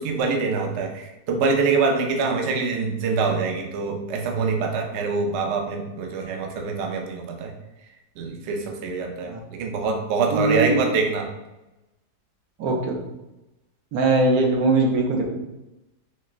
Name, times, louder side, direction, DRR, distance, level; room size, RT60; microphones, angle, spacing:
voice 1, 0.0-7.5 8.2-11.3, right 4 dB, 85° right, 2 dB, 0.6 m, -25 dB
voice 2, 10.3-10.8 12.6-12.9 13.9-15.2, right 2 dB, 70° right, 1 dB, 1.0 m, -20 dB
4.1 x 2.1 x 2.4 m, 0.97 s
omnidirectional pair, 1.8 m